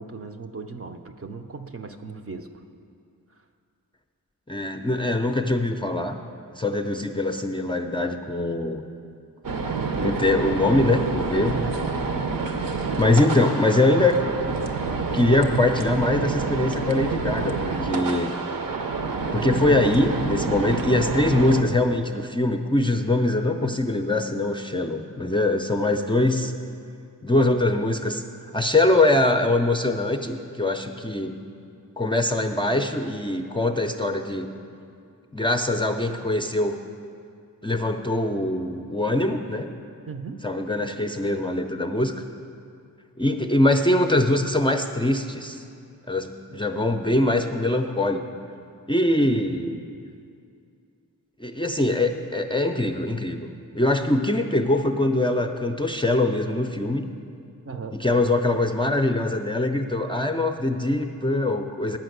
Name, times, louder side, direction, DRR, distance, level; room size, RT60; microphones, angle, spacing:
voice 1, 0.0-2.5 9.8-10.2 11.5-11.8 40.1-40.4 57.6-58.0, right 4 dB, 40° right, 6 dB, 0.6 m, -36 dB
voice 2, 4.5-6.2 6.6-8.8 10.0-11.6 13.0-14.5 15.1-18.3 19.3-26.5 27.2-28.2 28.5-31.3 32.0-34.5 35.3-36.8 37.6-39.7 40.4-42.1 43.2-45.6 46.1-48.2 48.9-49.8 51.4-57.1 58.0-62.0, left 2 dB, 15° left, 4 dB, 0.5 m, -23 dB
sound 1, 9.4-21.6, right 4 dB, 70° right, 0.8 m, -28 dB
10.5 x 5.1 x 7.9 m, 2.4 s
wide cardioid pair, 75°, 35 cm